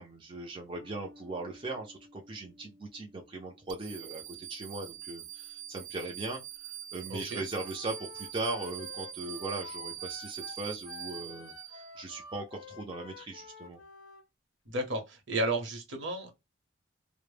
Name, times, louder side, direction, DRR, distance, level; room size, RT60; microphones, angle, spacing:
voice 1, 0.0-13.8, right 2 dB, 25° right, 0.4 m, -39 dB
sound 1, 0.8-7.5, left 1 dB, 25° left, 0.6 m, -60 dB
sound 2, 3.7-12.2, right 11 dB, 90° right, 0.4 m, -43 dB
voice 2, 7.1-7.4 14.7-16.3, right 1 dB, 65° right, 0.9 m, -33 dB
Wind instrument woodwind instrument, 7.5-14.2, left 5 dB, 75° left, 0.5 m, -50 dB
2.1 x 2.0 x 3.1 m
head